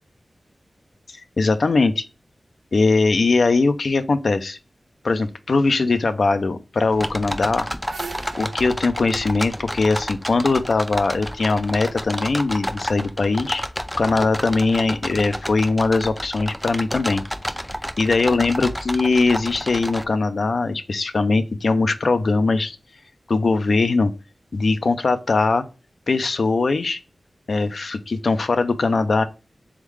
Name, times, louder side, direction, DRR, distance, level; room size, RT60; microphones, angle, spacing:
voice 1, 1.4-2.0 2.7-4.6 5.0-7.7 8.4-13.6 14.0-17.2 18.0-22.8 23.3-24.1 24.5-25.6 26.1-27.0 27.5-29.2, left 3 dB, 70° left, 9 dB, 0.5 m, -20 dB
sound 1, 6.9-20.0, equal, 5° left, 0.4 m, -30 dB
sound 2, 7.9-10.6, right 4 dB, 80° right, 0.4 m, -40 dB
3.6 x 3.6 x 3.2 m, 0.32 s
wide cardioid pair, 85°, 0 cm